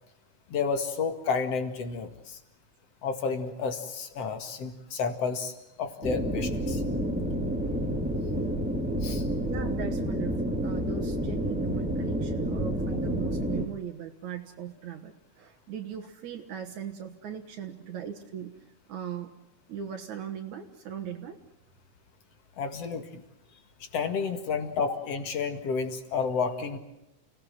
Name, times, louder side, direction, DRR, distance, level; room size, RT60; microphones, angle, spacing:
voice 1, 0.5-2.4 3.0-6.8 9.0-9.3 22.6-23.2 23.8-26.8, left 5 dB, 55° left, 8 dB, 3.0 m, -31 dB
sound 1, 6.0-13.7, equal, 5° right, 1.6 m, -29 dB
voice 2, 9.5-18.5 18.9-19.3 19.7-21.4 24.6-24.7, right 8 dB, 80° right, 2 dB, 2.9 m, -39 dB
29.5 x 18.0 x 7.7 m, 0.94 s
omnidirectional pair, 3.4 m